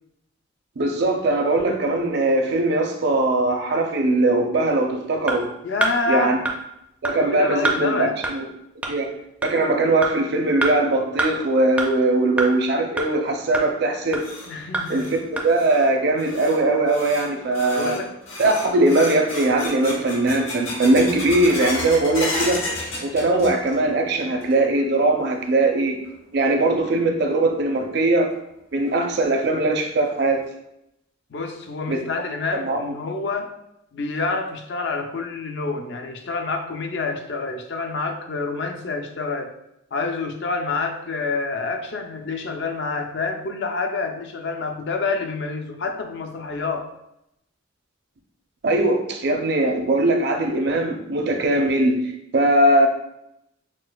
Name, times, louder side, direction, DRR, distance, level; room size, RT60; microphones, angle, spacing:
voice 1, 0.8-5.5 6.1-6.4 7.0-8.4 8.9-9.1 9.4-14.2 14.9-15.1 15.4-18.0 18.4-22.6 23.0-26.0 26.3-28.3 28.7-30.4 31.9-32.0 32.5-32.9 48.6-52.9, right 2 dB, 55° right, 3 dB, 0.5 m, -20 dB
sound 1, 5.3-5.4 5.8-5.9 6.4-6.5 7.0-7.1 7.6-7.8 8.2-8.3 8.8-8.9 9.4-9.5 10.0-10.1 10.6-10.7 11.2-11.3 11.8-11.9 12.4-12.5 13.0-13.1 13.5-13.6 14.1-14.2 14.7-14.8 15.4-15.5, right 2 dB, 5° right, 0.4 m, -23 dB
voice 2, 5.6-6.4 7.2-8.2 14.5-15.1 17.7-18.1 31.3-33.6 33.9-39.5 39.9-46.9, left 4 dB, 60° left, 5 dB, 0.4 m, -27 dB
sound 2, 13.8-23.9 24.2-24.8 25.2-25.3 26.0-26.1 27.8-27.9 28.3-28.4 28.9-29.0 29.5-29.6 30.1-30.5, left 2 dB, 90° left, 0.9 m, -33 dB
5.9 x 2.4 x 2.2 m, 0.81 s
head